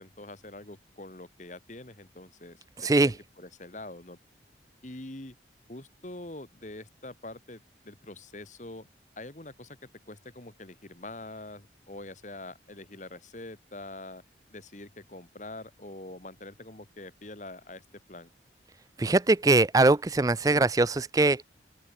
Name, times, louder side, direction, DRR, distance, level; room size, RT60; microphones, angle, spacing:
voice 1, 0.0-4.2 4.8-5.4 5.7-8.9 9.2-9.8 10.1-14.2 14.5-18.3, left 2 dB, 45° left, 1.9 m, -44 dB
voice 2, 2.8-3.1 19.0-21.4, right 2 dB, 20° right, 0.4 m, -22 dB
open air
head